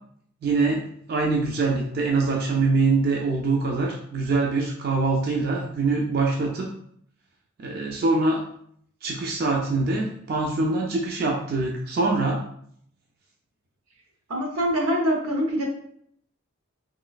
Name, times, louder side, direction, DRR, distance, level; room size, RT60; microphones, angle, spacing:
voice 1, 0.4-0.8 1.1-6.7 7.6-8.4 9.0-12.4, right 3 dB, 45° right, 0 dB, 0.3 m, -24 dB
voice 2, 14.3-15.6, equal, 85° right, 0 dB, 0.8 m, -24 dB
3.1 x 3.0 x 2.3 m, 0.66 s
head